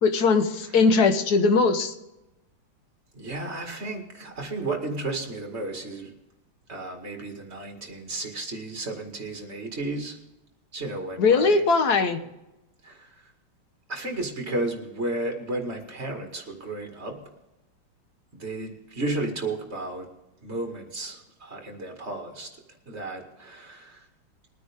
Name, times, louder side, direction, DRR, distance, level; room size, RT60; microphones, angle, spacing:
voice 1, 0.0-1.9 11.2-12.2, left 4 dB, 55° left, 8 dB, 1.5 m, -20 dB
voice 2, 3.1-6.1 6.7-10.2 10.7-11.6 12.8-13.3 13.9-17.2 18.3-20.1 20.4-22.5 22.9-24.1, right 2 dB, 30° right, 2 dB, 2.3 m, -33 dB
22.0 x 9.4 x 3.6 m, 0.96 s
omnidirectional pair, 2.3 m